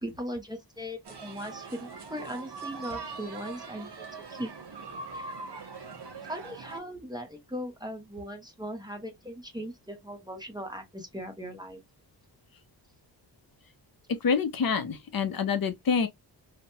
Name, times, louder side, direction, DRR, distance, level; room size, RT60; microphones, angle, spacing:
voice 1, 0.0-4.5 5.1-5.4 6.2-11.8, equal, 10° right, 0.6 m, -39 dB
sound 1, 1.0-6.8, right 4 dB, 65° right, 0.9 m, -41 dB
voice 2, 14.1-16.1, left 6 dB, 55° left, 0.5 m, -27 dB
2.9 x 2.1 x 2.6 m
wide cardioid pair, 145°, 43 cm